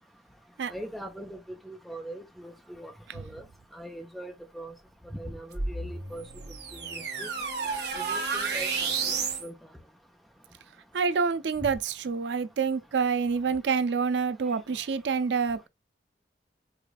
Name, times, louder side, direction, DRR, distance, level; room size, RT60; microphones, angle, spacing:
voice 1, 0.7-3.4 3.7-4.7 5.1-6.2 6.7-7.3 7.9-9.5, right 1 dB, ahead, 0.7 m, -41 dB
sound 1, 5.5-9.5, right 5 dB, 65° right, 1.2 m, -31 dB
voice 2, 10.9-15.7, right 5 dB, 80° right, 0.4 m, -27 dB
4.9 x 2.4 x 2.2 m
head